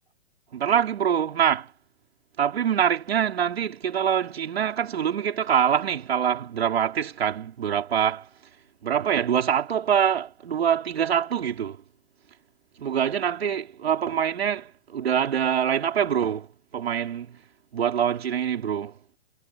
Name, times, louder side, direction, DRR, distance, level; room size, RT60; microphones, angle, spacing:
voice 1, 0.5-1.7 2.4-8.3 8.8-11.8 12.8-16.5 16.7-17.4 17.7-19.0, right 8 dB, 70° right, 3.8 m, -24 dB
hypercardioid pair, 120°, 32 cm